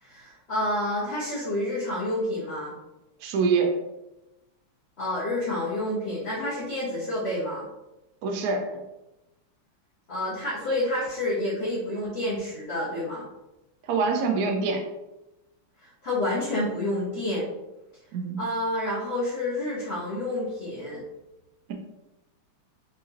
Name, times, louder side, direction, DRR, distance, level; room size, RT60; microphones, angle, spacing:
voice 1, 0.0-2.7 5.0-7.7 10.1-13.2 15.8-17.5 18.4-21.0, left 1 dB, 55° left, -7 dB, 0.7 m, -29 dB
voice 2, 3.2-3.8 8.2-8.7 13.9-14.8 18.1-18.4, right 4 dB, 85° right, 3 dB, 0.8 m, -25 dB
4.1 x 3.7 x 2.8 m, 0.98 s
omnidirectional pair, 2.4 m